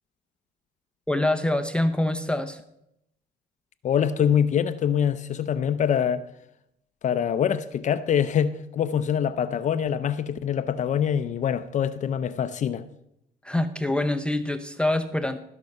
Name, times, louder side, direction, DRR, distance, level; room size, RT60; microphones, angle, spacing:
voice 1, 1.1-2.6 13.4-15.4, left 1 dB, 5° left, 0.6 m, -25 dB
voice 2, 3.8-6.2 7.0-12.8, left 8 dB, 45° left, 0.6 m, -24 dB
16.5 x 6.0 x 5.4 m
cardioid pair, 110°, 17 cm